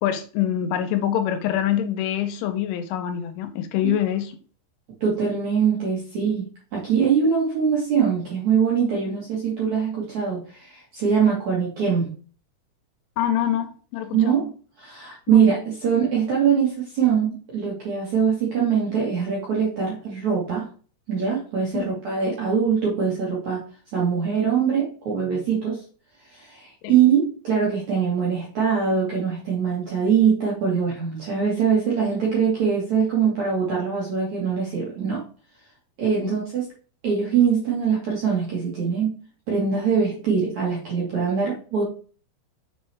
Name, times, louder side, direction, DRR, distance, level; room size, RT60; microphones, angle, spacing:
voice 1, 0.0-4.3 13.2-14.4 15.3-15.4 21.7-22.0 26.8-26.9 36.1-36.3, left 11 dB, 80° left, 3.1 m, -25 dB
voice 2, 5.0-6.5 6.7-12.1 14.1-14.5 14.8-20.7 21.1-23.6 23.9-25.8 26.3-35.2 36.0-36.7 37.0-39.2 39.5-41.8, right 6 dB, 60° right, 2.0 m, -22 dB
6.9 x 5.5 x 3.4 m
omnidirectional pair, 5.7 m